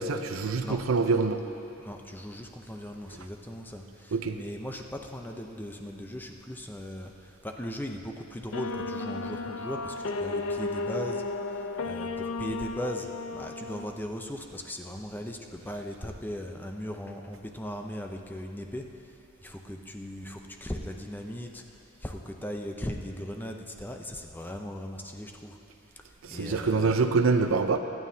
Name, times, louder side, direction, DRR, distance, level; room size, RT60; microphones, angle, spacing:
voice 1, 0.0-1.4 4.1-4.4 26.2-27.8, right 4 dB, 80° right, 7 dB, 0.7 m, -25 dB
voice 2, 1.8-7.1 7.4-9.9 10.2-11.2 11.8-18.9 19.4-21.6 22.0-25.6 26.3-27.0, equal, 10° left, 3 dB, 0.7 m, -38 dB
sound 1, 8.5-13.9, left 3 dB, 85° left, 0.6 m, -33 dB
23.5 x 9.5 x 2.8 m, 2.8 s
head